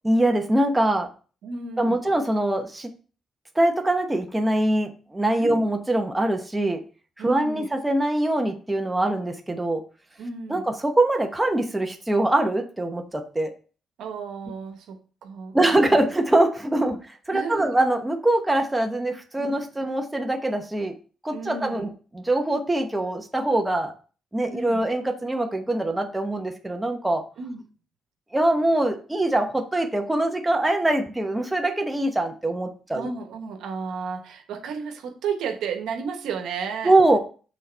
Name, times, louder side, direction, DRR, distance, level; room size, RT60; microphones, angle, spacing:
voice 1, 0.0-1.1 1.8-2.9 3.5-6.8 7.2-9.8 10.5-13.5 15.5-17.0 17.3-20.9 21.2-21.9 22.1-23.9 24.3-27.2 28.3-33.1 36.8-37.2, right 1 dB, 10° right, 4 dB, 1.0 m, -23 dB
voice 2, 1.4-2.0 5.4-5.6 7.2-7.7 10.2-10.7 14.0-16.0 16.8-17.0 17.3-17.8 19.4-19.6 21.3-21.9 24.5-24.8 27.4-27.6 32.9-36.9, right 5 dB, 80° right, 5 dB, 1.2 m, -33 dB
6.4 x 4.2 x 4.5 m, 0.38 s
cardioid pair, 90°, 0 cm